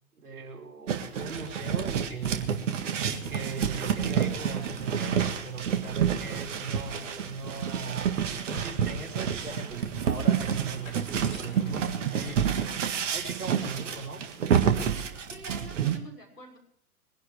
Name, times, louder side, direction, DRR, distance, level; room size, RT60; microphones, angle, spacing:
voice 1, 0.1-2.5 3.0-11.1 11.4-12.6 13.1-14.2, right 4 dB, 70° right, -1 dB, 4.8 m, -38 dB
sound 1, 0.9-16.0, right 8 dB, 50° right, 1.8 m, -29 dB
sound 2, 3.8-15.4, left 3 dB, 60° left, 4.7 m, -53 dB
voice 2, 15.3-16.6, equal, 85° left, 0 dB, 5.7 m, -46 dB
22.0 x 11.0 x 4.9 m, 0.66 s
figure-of-eight pair, 110°, 46 cm